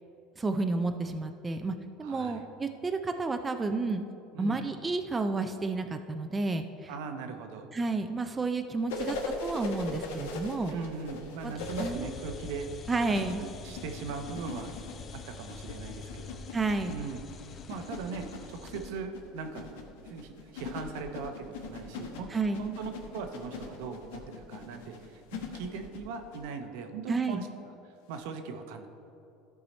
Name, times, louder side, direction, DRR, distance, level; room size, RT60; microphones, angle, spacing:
voice 1, 0.4-4.0 4.4-6.9 7.7-10.7 11.4-11.5 11.8-12.1 12.9-13.4 16.5-17.0 22.3-22.7 27.1-27.4, right 3 dB, 20° right, 7 dB, 0.4 m, -31 dB
voice 2, 2.0-2.5 4.3-4.7 6.9-7.7 9.0-9.2 10.7-14.7 15.1-16.4 16.8-19.7 20.0-22.3 22.6-25.2 25.5-28.9, right 5 dB, 75° right, 6 dB, 0.8 m, -40 dB
sound 1, 8.9-11.9 13.0-26.4 28.1-28.2, left 3 dB, 85° left, 1.1 m, -40 dB
sound 2, 11.6-18.9, left 5 dB, 40° left, 0.5 m, -45 dB
13.0 x 4.7 x 4.2 m, 2.8 s
supercardioid pair, 105°, 0 cm